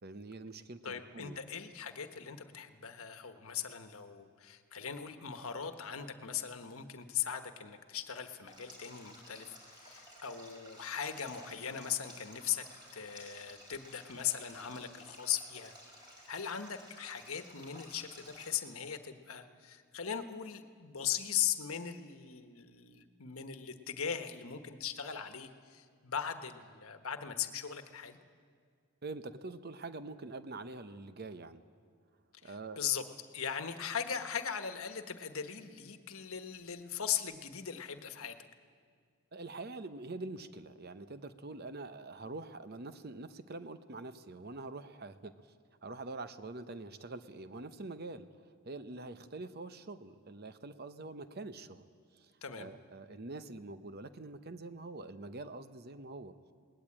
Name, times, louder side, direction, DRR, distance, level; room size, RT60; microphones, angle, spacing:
voice 1, 0.0-1.4 29.0-31.6 32.4-33.1 39.3-45.3 45.8-48.3 48.6-51.8 52.1-52.3 52.6-56.3, right 2 dB, 45° right, 11 dB, 0.8 m, -45 dB
voice 2, 0.8-12.7 12.9-15.7 16.3-28.2 32.4-33.0 33.3-38.4 52.4-52.7, left 8 dB, 75° left, 8 dB, 1.3 m, -39 dB
Stream, 8.5-18.5, equal, 20° right, 4.9 m, -55 dB
21.0 x 19.0 x 8.7 m, 2.1 s
head